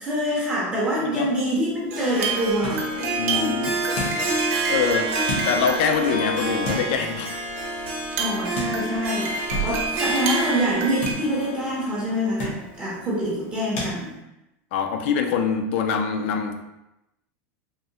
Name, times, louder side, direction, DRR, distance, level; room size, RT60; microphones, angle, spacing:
voice 1, 0.0-3.6 8.2-14.2, equal, 15° right, -6 dB, 0.6 m, -26 dB
voice 2, 1.0-1.3 3.2-5.2 5.5-7.3 14.7-16.6, left 6 dB, 55° left, 5 dB, 0.4 m, -25 dB
sound 1, 1.4-13.9, left 2 dB, 75° left, 1.2 m, -37 dB
Harp, 1.9-13.1, right 1 dB, 40° right, 0.9 m, -29 dB
sound 2, 2.2-7.1 7.6-7.7 7.8-11.1, right 5 dB, 85° right, 0.7 m, -30 dB
3.5 x 2.0 x 2.7 m, 0.92 s
supercardioid pair, 170°, 8 cm